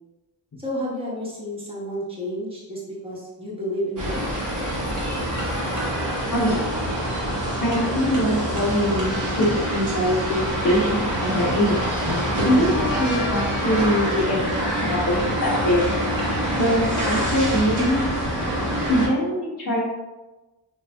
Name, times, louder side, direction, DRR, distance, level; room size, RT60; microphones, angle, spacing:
voice 1, 0.6-4.2, equal, 15° right, -7 dB, 1.2 m, -31 dB
sound 1, 4.0-19.1, right 1 dB, 50° right, 1.1 m, -25 dB
voice 2, 6.3-6.7 7.6-11.8 12.4-15.9 16.6-18.1 18.9-19.8, equal, 45° left, -8 dB, 0.8 m, -23 dB
3.8 x 2.5 x 2.2 m, 1.1 s
cardioid pair, 65°, 41 cm